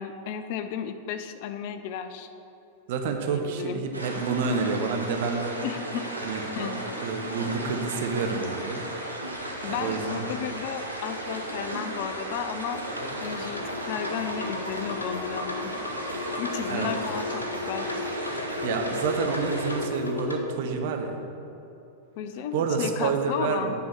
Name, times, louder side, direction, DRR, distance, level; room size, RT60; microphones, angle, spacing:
voice 1, 0.0-2.3 3.3-3.8 5.6-6.1 6.5-6.7 9.6-12.8 13.2-15.7 16.3-17.4 17.7-17.9 22.2-23.7, left 8 dB, 50° left, 9 dB, 0.5 m, -33 dB
voice 2, 2.9-5.7 6.2-6.4 6.7-8.8 9.6-10.3 16.7-16.9 18.6-21.2 22.5-23.7, right 5 dB, 50° right, 4 dB, 0.9 m, -29 dB
sound 1, 3.9-19.8, right 1 dB, 85° right, 1.2 m, -35 dB
sound 2, 12.7-20.4, left 2 dB, 80° left, 0.9 m, -34 dB
9.4 x 4.8 x 6.7 m, 3.0 s
figure-of-eight pair, 90°, 0 cm